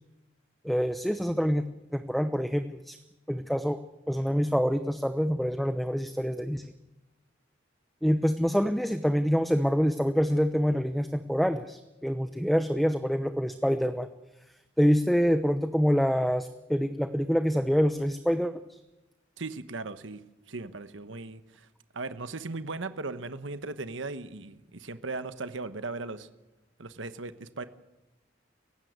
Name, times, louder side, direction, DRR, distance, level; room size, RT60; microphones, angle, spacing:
voice 1, 0.6-1.7 1.9-3.0 3.3-3.8 4.1-6.7 8.0-14.1 14.8-18.8, equal, ahead, 9 dB, 0.8 m, -26 dB
voice 2, 19.4-21.7 21.9-26.3 26.8-27.6, right 3 dB, 75° right, 11 dB, 1.2 m, -38 dB
28.5 x 16.0 x 8.1 m, 1.0 s
head